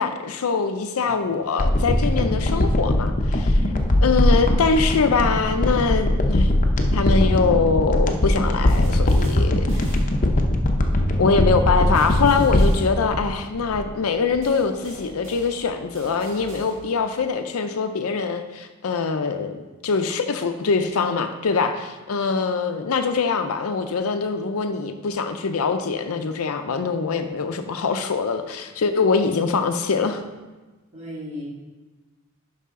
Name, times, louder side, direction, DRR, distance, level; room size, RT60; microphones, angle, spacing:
voice 1, 0.0-3.5 4.0-6.5 6.9-10.0 11.2-30.2, left 4 dB, 85° left, 7 dB, 0.5 m, -23 dB
sound 1, 1.6-14.1 14.3-14.4, left 1 dB, 40° left, 0.7 m, -20 dB
sound 2, 8.7-10.6 11.9-13.7 14.4-17.2, right 1 dB, 60° right, 1.8 m, -43 dB
voice 2, 30.9-31.4, left 1 dB, 35° right, -8 dB, 2.5 m, -34 dB
11.0 x 4.9 x 3.7 m, 1.2 s
head